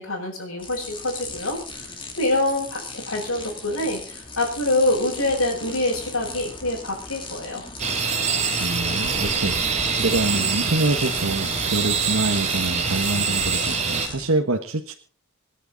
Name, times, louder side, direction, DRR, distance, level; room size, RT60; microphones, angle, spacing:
voice 1, 0.0-7.6, left 2 dB, 80° left, -6 dB, 6.3 m, -25 dB
sound 1, 0.6-14.3, left 3 dB, 25° left, 3.1 m, -37 dB
sound 2, 7.8-14.1, right 5 dB, 30° right, 2.7 m, -24 dB
voice 2, 8.6-14.9, right 2 dB, 85° right, 4 dB, 1.4 m, -26 dB
27.5 x 10.0 x 4.1 m, 0.42 s
head